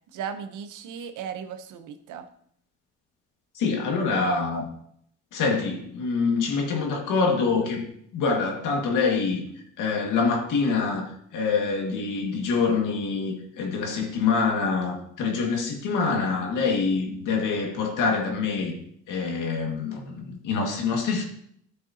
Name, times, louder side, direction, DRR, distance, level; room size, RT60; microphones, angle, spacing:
voice 1, 0.1-2.3, right 7 dB, 85° right, 0.9 m, -36 dB
voice 2, 3.6-4.7 5.3-7.9 8.1-9.4 9.8-18.7 19.1-21.2, left 4 dB, 85° left, 1.9 m, -25 dB
12.0 x 6.7 x 2.8 m
cardioid pair, 90°, 30 cm